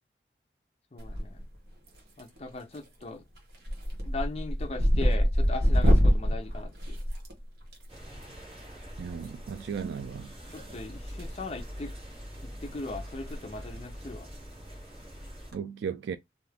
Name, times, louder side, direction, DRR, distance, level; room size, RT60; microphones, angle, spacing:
voice 1, 0.9-1.4 2.2-3.2 4.0-6.9 10.5-11.9 12.6-14.3, left 3 dB, 35° left, 0.5 m, -38 dB
sound 1, 1.0-1.6 1.9-2.4 2.7-3.0 3.4-7.8 9.1-9.3 10.5-11.3 11.6-11.8 12.3-12.4 12.7-12.8 13.1-13.3 13.6-13.7 15.3-15.5, equal, 65° right, 1.0 m, -25 dB
sound 2, 7.9-15.5, equal, 35° right, 1.3 m, -44 dB
voice 2, 9.0-10.3 15.5-16.2, right 7 dB, 85° right, 0.3 m, -35 dB
2.7 x 2.4 x 3.4 m
head